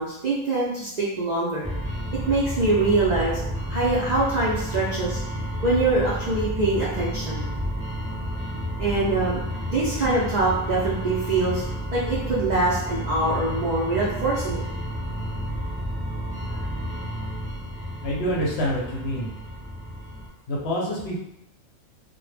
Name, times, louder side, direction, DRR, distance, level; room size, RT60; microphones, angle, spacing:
voice 1, 0.0-1.7 2.3-3.4 3.7-5.2 5.6-7.5 8.8-11.6 11.9-14.6, right 2 dB, 65° right, -7 dB, 0.4 m, -24 dB
sound 1, 1.6-20.3, equal, 5° right, 0.6 m, -31 dB
voice 2, 18.0-19.3 20.5-21.2, equal, 65° left, -3 dB, 0.7 m, -26 dB
2.1 x 2.1 x 3.2 m, 0.82 s
omnidirectional pair, 1.3 m